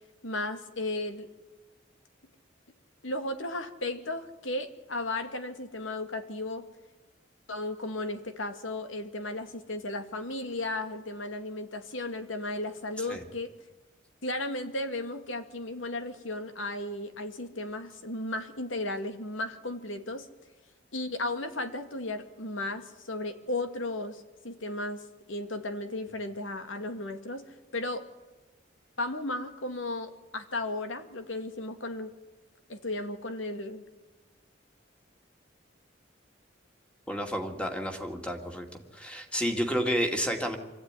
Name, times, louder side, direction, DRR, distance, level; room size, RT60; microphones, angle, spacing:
voice 1, 0.2-1.3 3.0-6.7 7.5-13.5 14.2-20.3 20.9-28.1 29.0-32.1 32.7-33.8, left 2 dB, 90° left, 8 dB, 2.1 m, -35 dB
voice 2, 37.1-38.7 38.9-40.6, equal, 5° left, 4 dB, 2.3 m, -30 dB
25.0 x 14.5 x 9.8 m, 1.2 s
head